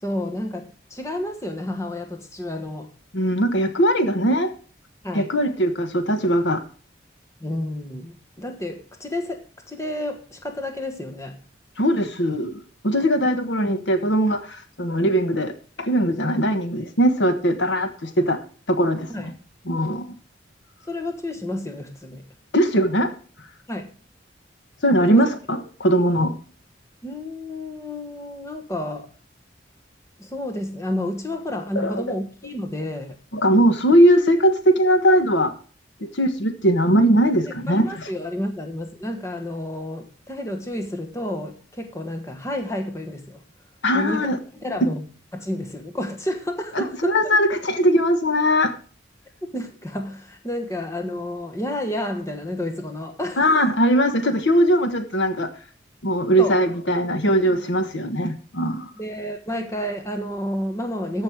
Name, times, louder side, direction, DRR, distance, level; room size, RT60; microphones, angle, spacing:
voice 1, 0.0-2.9 5.0-5.3 7.4-11.4 19.1-19.3 20.8-22.3 23.7-23.9 25.1-25.2 27.0-29.1 30.2-33.1 37.7-43.4 43.9-45.1 45.3-47.2 49.5-53.5 56.4-56.6 57.4-57.6 59.0-61.2, left 1 dB, 15° left, 1.3 m, -30 dB
voice 2, 3.1-4.5 5.1-6.6 11.8-18.4 18.7-19.3 19.7-20.1 22.5-23.1 24.8-26.3 31.7-32.0 33.3-35.5 36.0-38.1 43.8-44.4 46.7-48.7 53.4-55.5 56.0-58.9, equal, 80° left, 1.3 m, -20 dB
13.5 x 5.4 x 6.1 m
head